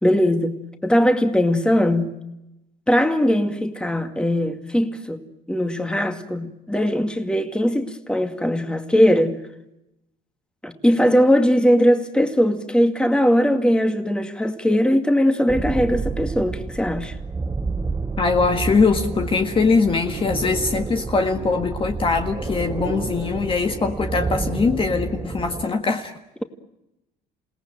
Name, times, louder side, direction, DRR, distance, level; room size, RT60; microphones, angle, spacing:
voice 1, 0.0-2.2 2.9-5.2 5.5-9.4 10.6-17.1, equal, 5° left, 2.3 m, -20 dB
sound 1, 15.5-25.6, right 4 dB, 15° right, 1.0 m, -29 dB
voice 2, 18.2-26.1, left 4 dB, 30° left, 1.7 m, -21 dB
28.5 x 18.5 x 8.9 m
cardioid pair, 110°, 17 cm